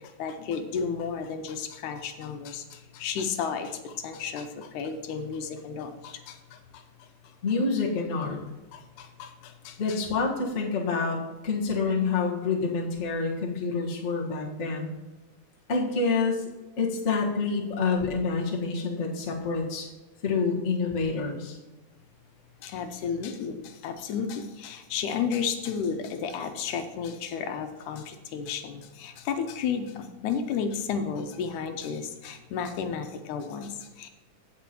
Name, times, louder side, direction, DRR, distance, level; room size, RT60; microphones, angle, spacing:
voice 1, 0.0-7.1 7.6-7.7 8.7-10.0 22.6-34.1, left 6 dB, 90° left, 7 dB, 2.2 m, -33 dB
voice 2, 7.4-8.4 9.8-11.2 11.4-14.9 15.7-16.4 16.8-19.8 20.2-21.6, left 4 dB, 35° left, -3 dB, 1.2 m, -27 dB
15.5 x 6.0 x 3.0 m, 1.1 s
omnidirectional pair, 3.5 m